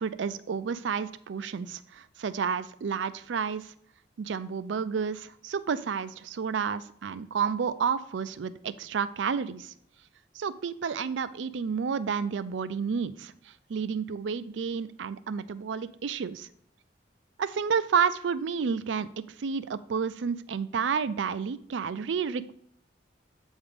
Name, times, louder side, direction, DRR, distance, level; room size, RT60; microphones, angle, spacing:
voice 1, 0.0-3.7 4.2-9.7 10.3-16.5 17.4-22.5, right 6 dB, 85° right, 14 dB, 0.4 m, -30 dB
8.0 x 3.6 x 4.9 m, 0.67 s
head